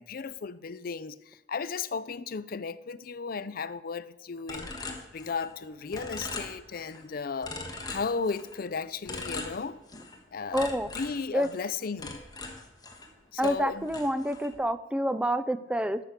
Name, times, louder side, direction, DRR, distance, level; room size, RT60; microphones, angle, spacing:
voice 1, 0.0-4.7 5.1-7.6 7.9-9.8 10.3-12.2 13.3-13.9 14.2-14.3, left 5 dB, 55° left, 0.5 m, -35 dB
sound 1, 4.5-5.6 5.9-7.0 7.4-8.6 9.1-10.2 10.5-13.1 13.4-14.6, left 2 dB, 20° left, 1.3 m, -40 dB
voice 2, 10.5-10.9 11.3-11.5 13.4-16.0, equal, 5° right, 0.4 m, -28 dB
13.0 x 5.9 x 6.5 m
head